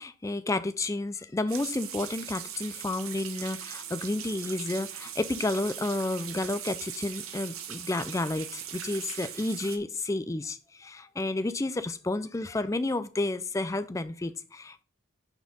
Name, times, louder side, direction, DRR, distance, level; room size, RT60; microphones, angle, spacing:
voice 1, 0.0-14.8, left 2 dB, 15° left, 12 dB, 0.3 m, -31 dB
sound 1, 1.5-9.8, right 9 dB, 90° right, 0.9 m, -40 dB
5.9 x 4.4 x 5.2 m, 0.38 s
head